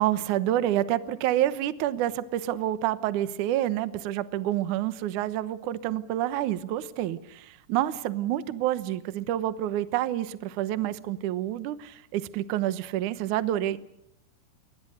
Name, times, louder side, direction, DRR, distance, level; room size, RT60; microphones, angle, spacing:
voice 1, 0.0-13.8, right 13 dB, 80° right, 13 dB, 1.7 m, -28 dB
28.5 x 22.0 x 6.6 m, 0.78 s
omnidirectional pair, 5.1 m